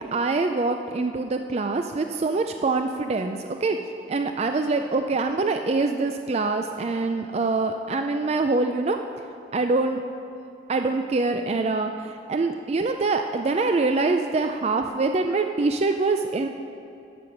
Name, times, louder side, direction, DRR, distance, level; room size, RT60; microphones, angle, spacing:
voice 1, 0.0-3.8 4.1-9.0 9.5-10.0 10.7-16.5, right 3 dB, 35° right, 6 dB, 0.3 m, -24 dB
12.5 x 7.0 x 5.8 m, 2.7 s
head